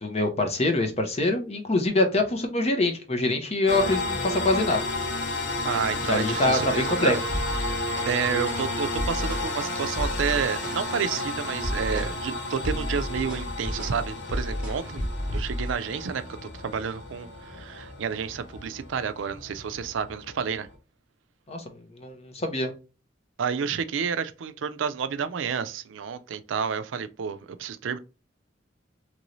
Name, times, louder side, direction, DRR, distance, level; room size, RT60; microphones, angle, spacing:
voice 1, 0.0-4.8 6.1-7.2 21.5-21.6 21.9-22.7, left 2 dB, 35° left, 0.7 m, -24 dB
sound 1, 3.7-20.8, left 2 dB, 65° left, 0.8 m, -32 dB
voice 2, 5.6-7.1 7.6-20.7 23.4-28.0, right 6 dB, 80° right, 0.4 m, -30 dB
sound 2, 7.3-8.2 8.4-8.7 9.0-9.5 9.9-10.8 11.1-11.3 11.6-12.2 12.5-15.8, equal, 5° right, 1.3 m, -32 dB
3.0 x 2.6 x 3.0 m
head